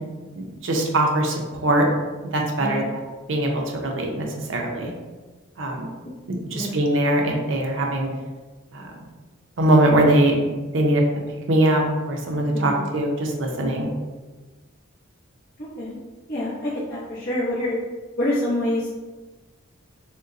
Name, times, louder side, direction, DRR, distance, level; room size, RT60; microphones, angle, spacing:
voice 1, 0.6-1.8 2.3-2.8 3.3-4.9 5.6-5.9 6.5-8.1 8.7-8.9 9.6-10.5 10.7-11.0 11.5-13.9, right 1 dB, 65° right, 1 dB, 0.7 m, -21 dB
voice 2, 12.5-12.9 15.6-16.0 16.3-17.8 18.2-18.9, left 1 dB, 50° left, -9 dB, 0.9 m, -26 dB
6.4 x 2.2 x 2.6 m, 1.3 s
head